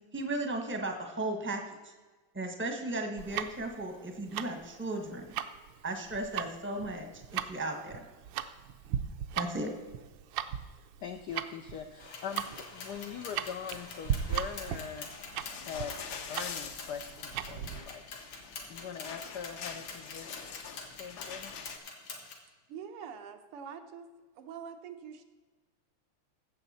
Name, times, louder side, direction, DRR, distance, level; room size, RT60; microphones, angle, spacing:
voice 1, 0.1-1.9 2.3-5.2 5.8-7.1 7.3-8.0 9.4-9.7, right 2 dB, 10° right, 4 dB, 0.7 m, -35 dB
Tick-tock, 3.2-17.8, right 10 dB, 70° right, 1.2 m, -38 dB
voice 2, 11.0-15.1 15.6-18.0 18.7-20.3 21.0-21.5, left 7 dB, 75° left, 5 dB, 0.9 m, -42 dB
sound 1, 12.0-22.3, left 4 dB, 90° left, 2.5 m, -46 dB
sound 2, 15.0-21.8, left 6 dB, 60° left, 1.2 m, -45 dB
voice 3, 22.7-24.1 24.4-25.2, right 7 dB, 90° right, 7 dB, 1.9 m, -44 dB
15.5 x 7.0 x 4.2 m, 1.3 s
omnidirectional pair, 2.4 m